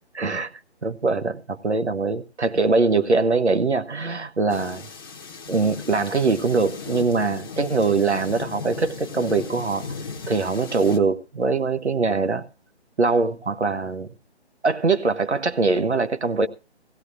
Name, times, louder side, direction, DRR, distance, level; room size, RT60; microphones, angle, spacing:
voice 1, 0.2-0.5 0.8-4.9 5.5-9.9 10.3-12.5 13.0-14.1 14.6-16.5, right 4 dB, 80° right, 1.0 m, -22 dB
sound 1, 4.5-11.0, left 5 dB, 20° left, 0.8 m, -37 dB
18.5 x 16.0 x 2.4 m
figure-of-eight pair, 145°, 33 cm